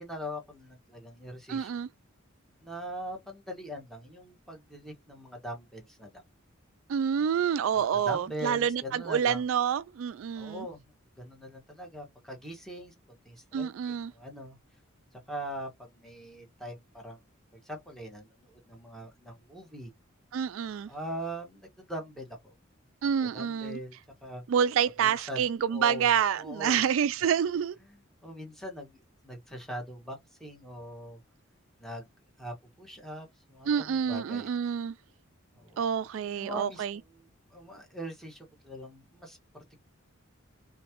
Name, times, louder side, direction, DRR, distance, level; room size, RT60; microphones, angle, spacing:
voice 1, 0.0-1.8 2.6-6.2 7.7-9.4 10.4-10.8 11.2-12.9 13.2-14.6 15.3-17.2 17.6-19.9 20.9-22.5 23.2-24.4 25.0-25.4 25.7-26.8 27.8-31.2 31.8-32.1 32.4-34.5 35.5-35.8 36.3-39.8, equal, ahead, 1.4 m, -42 dB
voice 2, 1.5-1.9 6.9-10.7 13.5-14.1 20.3-20.9 23.0-23.8 24.5-27.8 33.7-34.9 35.8-37.0, right 8 dB, 70° right, 0.3 m, -28 dB
3.5 x 3.0 x 2.9 m
head